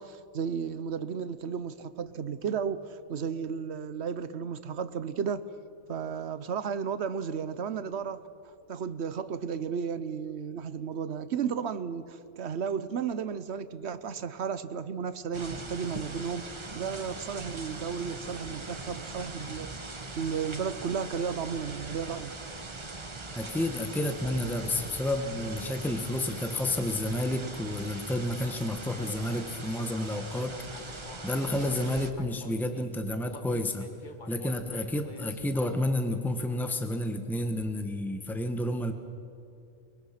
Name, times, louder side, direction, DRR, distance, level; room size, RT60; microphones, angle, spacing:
voice 1, 0.0-5.5 5.9-8.3 8.7-22.3, right 6 dB, 80° right, 1.1 m, -34 dB
sound 1, 15.3-32.1, right 3 dB, 25° right, 1.1 m, -41 dB
voice 2, 23.3-33.9 34.3-38.9, left 1 dB, ahead, 1.2 m, -30 dB
Human voice, 29.0-32.9 33.3-36.0, left 4 dB, 45° left, 1.5 m, -48 dB
23.0 x 22.5 x 5.9 m
omnidirectional pair, 1.1 m